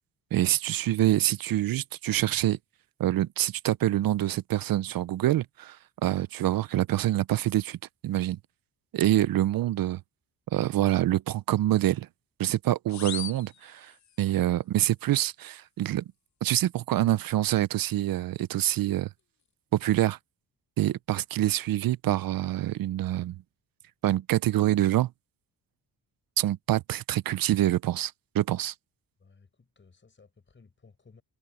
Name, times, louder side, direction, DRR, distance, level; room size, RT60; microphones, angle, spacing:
voice 1, 0.3-2.6 3.0-5.8 6.0-7.8 8.0-8.4 8.9-10.0 10.5-12.1 12.4-13.9 14.2-16.0 16.4-19.1 19.7-20.2 20.8-23.4 24.0-25.1 26.4-28.7, right 13 dB, 60° right, 0.5 m, -26 dB
sound 1, 12.9-14.4, left 9 dB, 45° left, 0.9 m, -40 dB
voice 2, 29.2-31.2, left 4 dB, 30° left, 5.9 m, -58 dB
cardioid pair, 140°, 41 cm